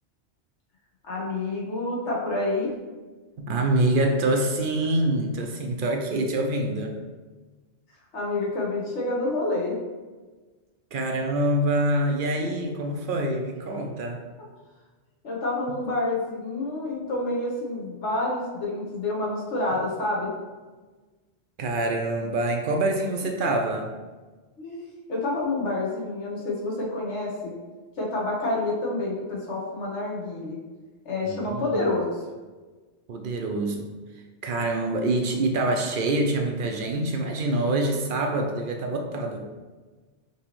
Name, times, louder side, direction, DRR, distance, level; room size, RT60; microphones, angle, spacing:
voice 1, 1.0-2.7 8.1-9.8 13.7-13.9 14.4-14.5 15.2-20.3 23.4-23.5 24.6-24.8 25.1-27.5 28.0-30.6 31.0-32.1 34.5-34.6, left 2 dB, 80° left, -4 dB, 1.5 m, -28 dB
voice 2, 3.4-6.9 10.9-14.2 21.6-23.9 31.3-31.8 33.1-33.9 34.4-39.5, right 1 dB, 60° right, 3 dB, 0.6 m, -25 dB
5.3 x 2.9 x 3.0 m, 1.3 s
omnidirectional pair, 1.2 m